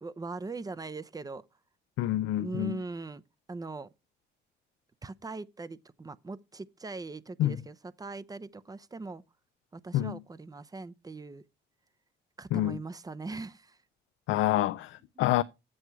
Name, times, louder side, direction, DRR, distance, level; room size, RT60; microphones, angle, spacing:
voice 1, 0.0-1.4 2.4-3.2 3.5-3.9 5.0-9.2 9.7-11.4 12.4-13.8 15.2-15.3, right 3 dB, 20° right, 0.5 m, -40 dB
voice 2, 2.0-2.8 7.4-7.6 9.9-10.2 12.5-12.8 14.3-15.4, left 14 dB, 80° left, 0.4 m, -27 dB
8.0 x 7.7 x 4.6 m
cardioid pair, 90°, 20 cm